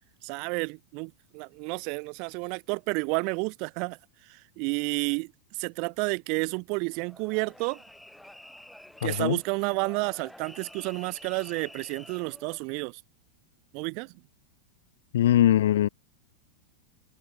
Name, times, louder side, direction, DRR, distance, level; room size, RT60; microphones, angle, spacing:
voice 1, 0.2-4.0 4.3-5.3 5.6-7.8 9.0-13.0 13.7-14.1, right 34 dB, 45° right, 2.4 m, -31 dB
sound 1, 6.9-12.6, left 1 dB, 5° left, 6.3 m, -49 dB
voice 2, 9.0-9.4 15.1-15.9, left 12 dB, 60° left, 1.7 m, -21 dB
figure-of-eight pair, 90°, 0 cm